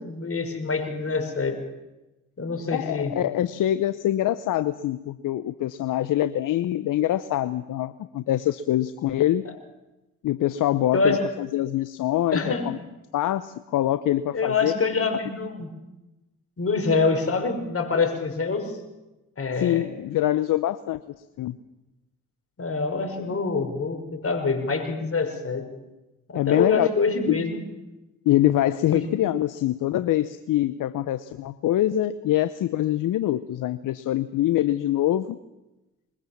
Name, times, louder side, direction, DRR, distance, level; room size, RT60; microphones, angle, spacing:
voice 1, 0.0-1.6 2.4-3.1 10.9-11.2 12.3-12.7 14.3-15.7 16.6-18.8 19.4-19.9 22.6-25.7 26.3-27.6 28.9-29.1, left 4 dB, 40° left, 6 dB, 5.6 m, -25 dB
voice 2, 2.7-9.5 10.2-12.8 13.1-14.7 19.6-21.0 21.4-21.6 26.3-26.9 27.3-27.4 28.3-35.4, left 13 dB, 65° left, 13 dB, 0.9 m, -24 dB
22.0 x 20.5 x 7.3 m, 1.0 s
hypercardioid pair, 50°, 34 cm